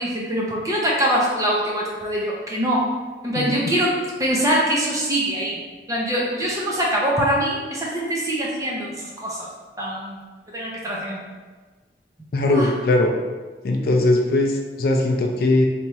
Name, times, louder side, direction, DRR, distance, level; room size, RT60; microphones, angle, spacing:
voice 1, 0.0-2.8 3.2-3.9 4.2-5.6 5.9-9.5 9.8-10.2 10.5-11.3 12.4-12.7, equal, 20° right, -4 dB, 0.6 m, -23 dB
voice 2, 3.3-3.7 12.3-13.2 13.6-15.7, left 2 dB, 55° left, 2 dB, 0.4 m, -20 dB
3.4 x 2.8 x 3.0 m, 1.3 s
head